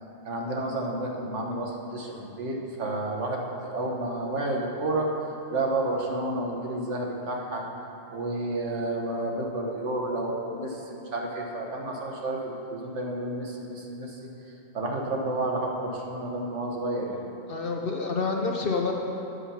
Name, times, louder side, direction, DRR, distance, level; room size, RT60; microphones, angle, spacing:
voice 1, 0.2-5.1 5.5-7.6 8.1-14.2 14.7-17.2, right 2 dB, 65° right, 0 dB, 1.4 m, -30 dB
voice 2, 17.5-18.9, left 4 dB, 55° left, 1 dB, 0.7 m, -28 dB
8.3 x 7.4 x 5.7 m, 2.9 s
omnidirectional pair, 1.4 m